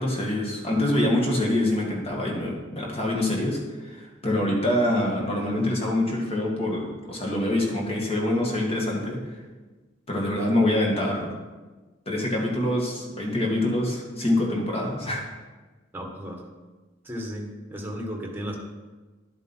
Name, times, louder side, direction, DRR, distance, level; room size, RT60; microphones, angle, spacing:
voice 1, 0.0-9.2 10.1-11.3 12.1-15.2, left 1 dB, 30° left, -1 dB, 2.2 m, -25 dB
voice 2, 15.9-16.5 17.0-18.6, equal, 10° right, 1 dB, 1.5 m, -34 dB
12.5 x 7.9 x 4.6 m, 1.3 s
head